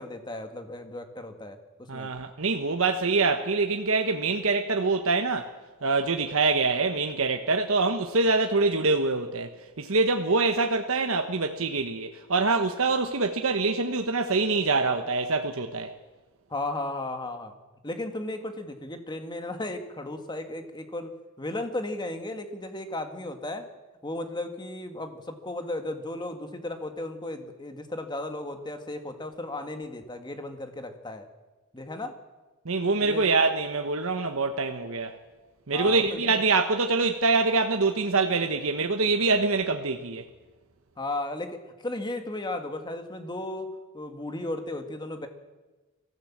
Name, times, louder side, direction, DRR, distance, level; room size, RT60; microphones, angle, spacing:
voice 1, 0.0-1.6 1.9-2.1 16.5-17.6 17.8-23.7 24.0-31.3 31.7-32.1 33.0-33.2 35.7-36.4 41.0-45.3, left 2 dB, 20° left, 6 dB, 1.8 m, -35 dB
voice 2, 1.9-5.5 5.8-9.5 9.8-15.9 32.6-35.2 35.7-40.2, right 3 dB, 65° right, 5 dB, 1.1 m, -25 dB
23.0 x 15.0 x 7.4 m, 1.2 s
head